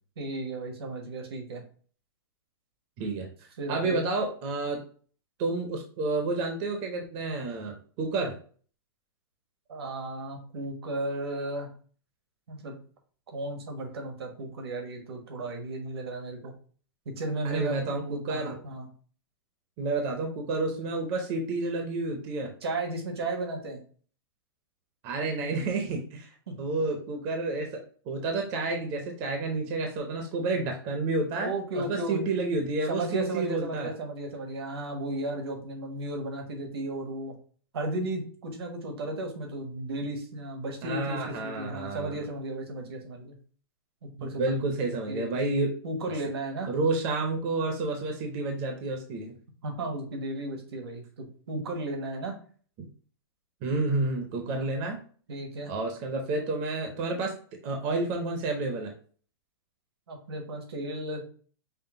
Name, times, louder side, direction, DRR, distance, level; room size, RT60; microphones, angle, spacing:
voice 1, 0.2-1.6 3.6-4.0 9.7-11.7 12.5-12.7 13.3-16.5 17.0-18.9 22.6-23.8 26.5-26.6 31.4-32.2 32.9-37.3 37.7-43.4 44.0-44.7 45.1-45.4 45.8-46.7 49.6-52.3 54.5-54.7 55.3-55.7 60.1-61.2, right 2 dB, 85° right, 3 dB, 1.3 m, -34 dB
voice 2, 3.0-3.3 3.7-4.8 5.4-8.4 17.4-18.6 19.8-22.5 25.0-26.3 26.6-27.8 28.1-33.9 40.8-42.2 44.2-45.7 46.7-49.4 52.8-52.9 53.6-55.0 55.7-57.4 57.6-58.9, right 3 dB, 25° right, 3 dB, 0.6 m, -30 dB
5.5 x 2.1 x 3.7 m, 0.43 s
supercardioid pair, 175°, 13 cm